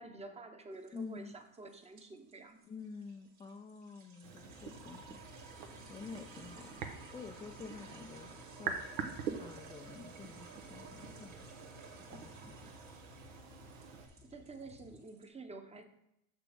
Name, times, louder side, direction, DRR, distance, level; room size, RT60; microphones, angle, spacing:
voice 1, 0.0-2.6 14.2-15.8, right 3 dB, 15° right, 6 dB, 0.9 m, -49 dB
sound 1, 0.7-15.3, right 5 dB, 45° right, 2.0 m, -55 dB
voice 2, 0.9-1.4 2.6-5.2 5.9-6.9 7.1-8.3 8.6-8.8 9.4-11.5 11.9-12.7, left 5 dB, 15° left, 4 dB, 0.4 m, -49 dB
sound 2, 4.2-14.1, right 6 dB, 85° right, 1.0 m, -46 dB
sound 3, 4.4-15.0, left 7 dB, 60° left, 0.9 m, -59 dB
6.8 x 6.1 x 3.5 m, 0.82 s
supercardioid pair, 90°, 40 cm